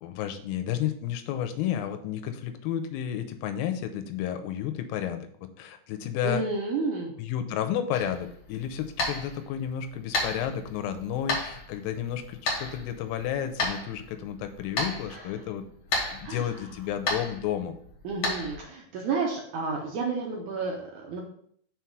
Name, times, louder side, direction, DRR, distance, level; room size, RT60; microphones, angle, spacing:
voice 1, 0.0-6.5 7.2-15.7 16.1-17.8, left 10 dB, 80° left, 8 dB, 2.2 m, -32 dB
voice 2, 6.2-7.1 15.1-15.3 16.2-16.7 18.0-21.2, right 4 dB, 75° right, -1 dB, 1.8 m, -31 dB
sound 1, 7.9-18.6, left 2 dB, 65° left, 1.2 m, -34 dB
5.8 x 4.0 x 4.7 m, 0.63 s
omnidirectional pair, 4.5 m